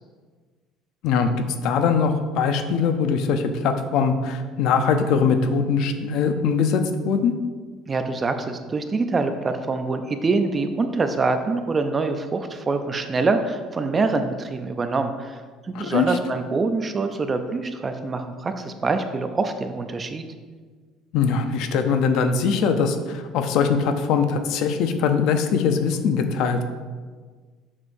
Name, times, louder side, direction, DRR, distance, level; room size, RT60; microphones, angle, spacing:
voice 1, 1.6-7.3 15.7-16.2 21.1-26.7, left 6 dB, 65° left, 7 dB, 0.6 m, -22 dB
voice 2, 7.9-15.4 15.7-20.2, right 3 dB, 20° right, 8 dB, 0.4 m, -25 dB
7.3 x 6.3 x 2.6 m, 1.5 s
cardioid pair, 145°, 0 cm